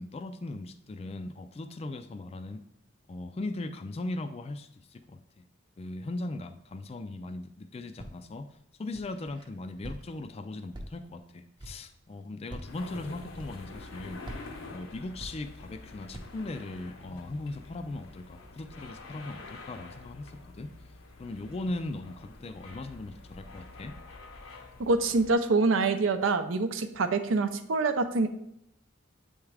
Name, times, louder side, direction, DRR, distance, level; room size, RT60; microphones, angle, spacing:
voice 1, 0.0-2.6 3.1-5.2 5.8-8.5 8.8-14.2 14.7-20.7 21.2-23.9, left 2 dB, 30° left, 8 dB, 0.4 m, -38 dB
Walk footsteps, 8.0-8.4 8.9-9.5 9.8-10.3 10.7-11.2 11.6-11.9 12.4-12.9 13.3-13.9 14.2-15.8 16.1-16.5, right 1 dB, 25° right, 0.7 m, -44 dB
sound 1, 12.6-25.3, left 3 dB, 85° left, 0.9 m, -47 dB
voice 2, 24.8-28.3, right 3 dB, 80° right, 9 dB, 0.6 m, -25 dB
8.0 x 3.5 x 3.3 m, 0.78 s
head